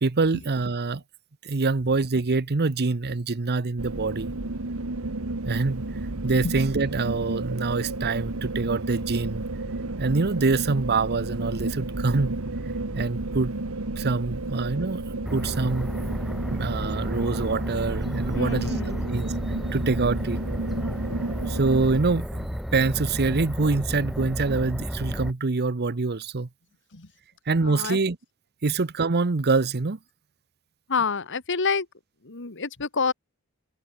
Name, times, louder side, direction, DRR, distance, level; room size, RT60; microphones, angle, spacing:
voice 1, 0.0-1.0 1.4-4.3 5.4-5.9 6.2-9.5 10.0-12.4 12.9-13.5 14.0-15.0 15.3-15.9 16.5-19.3 19.7-20.4 21.5-26.5 27.5-28.2 28.6-30.0, right 3 dB, 50° right, 0.8 m, -25 dB
sound 1, 3.8-22.0, right 2 dB, 75° right, 1.6 m, -32 dB
sound 2, 15.3-25.3, equal, ahead, 1.6 m, -32 dB
voice 2, 18.3-19.1 26.9-27.1 27.6-28.0 30.9-31.9 32.3-33.1, left 4 dB, 60° left, 1.9 m, -28 dB
head